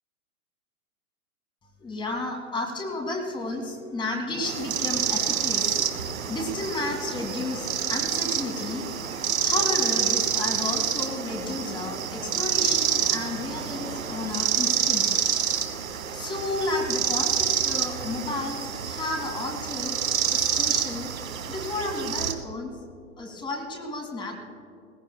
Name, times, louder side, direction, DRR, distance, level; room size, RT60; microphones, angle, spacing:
voice 1, 1.8-8.9 9.4-15.2 16.1-20.0 20.3-21.1 21.5-22.8 23.2-24.3, left 2 dB, 10° left, 2 dB, 2.0 m, -32 dB
sound 1, 4.3-14.6, right 4 dB, 20° right, 1.7 m, -41 dB
sound 2, 4.4-22.3, right 8 dB, 70° right, 1.4 m, -27 dB
21.0 x 17.5 x 2.3 m, 2.5 s
hypercardioid pair, 125°, 42 cm